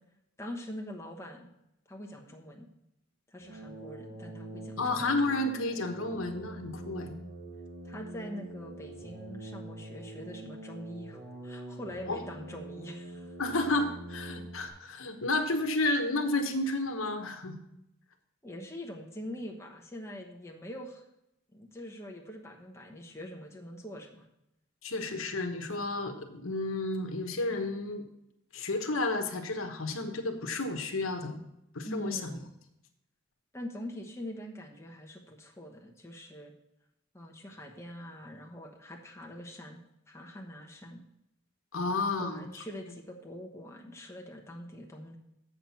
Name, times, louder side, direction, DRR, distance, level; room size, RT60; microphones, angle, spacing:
voice 1, 0.4-1.5 1.9-2.7 3.3-5.1 7.8-13.4 18.4-21.0 21.5-24.2 31.8-32.5 33.5-36.5 37.1-39.8 40.1-41.0 41.9-45.2, equal, 15° left, 0 dB, 1.0 m, -43 dB
sound 1, 3.4-14.7, right 2 dB, 45° right, 1.7 m, -44 dB
voice 2, 4.8-7.1 12.1-12.2 13.4-17.5 24.8-28.0 28.5-31.4 31.7-32.3 41.7-42.4, left 2 dB, 85° left, 5 dB, 1.1 m, -31 dB
7.7 x 6.0 x 7.0 m, 0.84 s
head